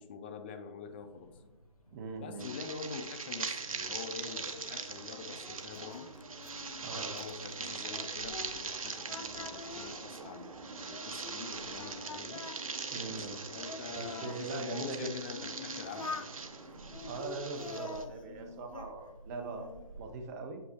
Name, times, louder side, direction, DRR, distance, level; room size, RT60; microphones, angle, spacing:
voice 1, 0.0-1.3 2.2-6.1 6.9-12.4 13.1-16.3, left 6 dB, 20° left, 7 dB, 0.3 m, -45 dB
sound 1, 0.8-20.1, right 1 dB, 90° left, 1.2 m, -58 dB
voice 2, 1.9-2.5 6.8-7.1 12.9-13.4 13.9-15.1 17.1-19.7 20.0-20.6, right 3 dB, 30° right, 5 dB, 0.8 m, -41 dB
sound 2, 2.4-18.0, right 4 dB, 70° right, 0.8 m, -41 dB
Singing, 4.3-8.8 9.1-11.4 11.8-14.4 15.0-16.3 16.9-18.9 19.3-19.9, left 4 dB, 65° left, 0.5 m, -46 dB
7.4 x 5.5 x 2.8 m, 1.1 s
figure-of-eight pair, 135°, 18 cm